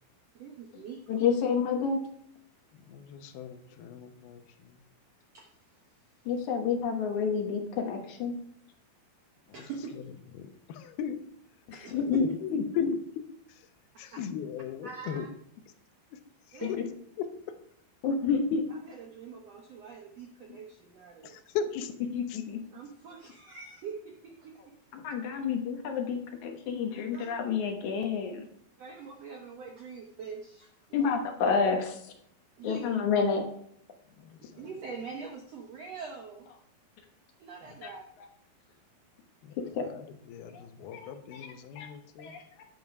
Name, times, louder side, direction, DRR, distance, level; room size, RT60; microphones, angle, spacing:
voice 1, 0.3-1.2 5.3-5.5 9.5-10.0 11.7-11.9 14.1-14.2 14.8-15.3 16.5-16.7 18.8-21.4 22.7-24.7 27.1-27.3 28.8-31.1 32.6-32.9 34.4-36.5 37.4-38.0, right 5 dB, 75° right, 2 dB, 1.5 m, -44 dB
voice 2, 1.1-2.0 6.3-8.4 11.7-12.9 16.6-16.7 18.0-18.7 22.1-22.6 24.9-28.5 30.9-32.1 32.6-33.5 37.8-37.9 39.7-39.8 40.5-40.6 40.9-41.9 42.2-42.7, left 5 dB, 65° left, 3 dB, 2.2 m, -29 dB
voice 3, 2.7-4.8 9.9-10.0 10.3-11.2 12.0-13.0 13.5-13.7 14.0-15.3 16.1-16.2 16.5-16.8 17.2-17.6 21.2-21.9 22.3-22.4 34.2-34.7 37.7-37.8 39.4-42.3, left 8 dB, 80° left, 8 dB, 2.8 m, -38 dB
10.5 x 7.7 x 4.8 m, 0.67 s
omnidirectional pair, 4.4 m